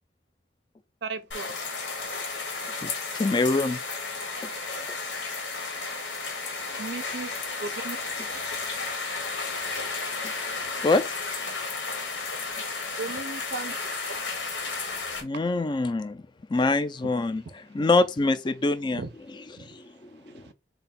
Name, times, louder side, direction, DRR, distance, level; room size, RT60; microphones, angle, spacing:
voice 1, 1.0-1.6 6.8-7.3 7.6-8.0 13.0-13.8 18.9-19.1 19.6-19.7 20.5-20.6, right 4 dB, 65° right, 0.5 m, -35 dB
sound 1, 1.3-15.2, left 4 dB, 85° left, 1.2 m, -33 dB
voice 2, 3.1-3.8 4.4-4.5 4.9-5.0 10.8-11.1 15.2-16.2 16.5-20.4, left 3 dB, 25° left, 0.3 m, -25 dB
3.8 x 2.3 x 4.2 m
head